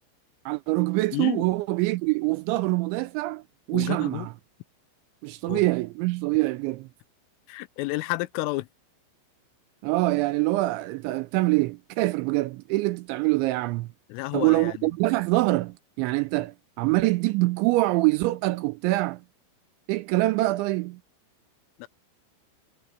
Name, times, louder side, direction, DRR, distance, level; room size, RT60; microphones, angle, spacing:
voice 1, 0.5-3.4 3.7-4.3 5.2-6.9 9.8-13.9 14.3-19.2 19.9-21.0, right 20 dB, 85° right, 2.8 m, -25 dB
voice 2, 1.1-1.4 3.7-4.3 5.5-5.6 7.5-8.7 14.1-14.8 21.8-21.9, left 20 dB, 90° left, 3.3 m, -31 dB
omnidirectional pair, 5.7 m